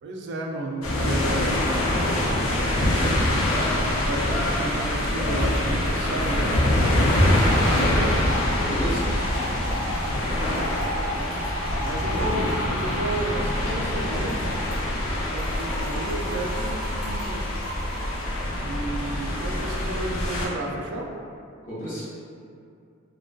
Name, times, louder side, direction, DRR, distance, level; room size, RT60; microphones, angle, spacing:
voice 1, 0.0-1.6 3.8-6.6 9.4-9.8 11.0-11.4 11.8-14.4 15.3-17.5 18.7-21.1, right 2 dB, 55° right, 0 dB, 0.3 m, -32 dB
sound 1, 0.8-20.5, left 1 dB, 85° left, 0.5 m, -24 dB
Trickle dribble / Fill (with liquid), 4.6-4.7 5.0-5.1 5.3-18.4, equal, 25° right, 0.7 m, -37 dB
voice 2, 7.7-8.3 8.6-9.1 12.1-12.5 21.6-22.0, equal, 40° left, -10 dB, 0.8 m, -31 dB
2.5 x 2.2 x 2.3 m, 2.4 s
head